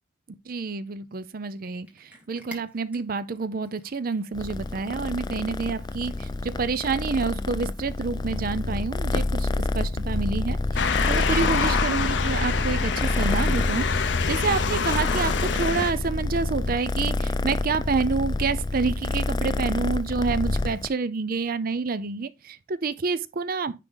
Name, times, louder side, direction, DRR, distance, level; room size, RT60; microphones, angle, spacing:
voice 1, 0.5-23.7, right 4 dB, 50° right, 0.5 m, -28 dB
Cat, 1.2-6.4, right 1 dB, 10° right, 1.9 m, -51 dB
Purr, 4.3-20.9, left 2 dB, 20° left, 0.4 m, -28 dB
Motor vehicle (road) / Siren, 10.8-15.9, left 5 dB, 65° left, 0.7 m, -26 dB
9.9 x 3.7 x 3.8 m
head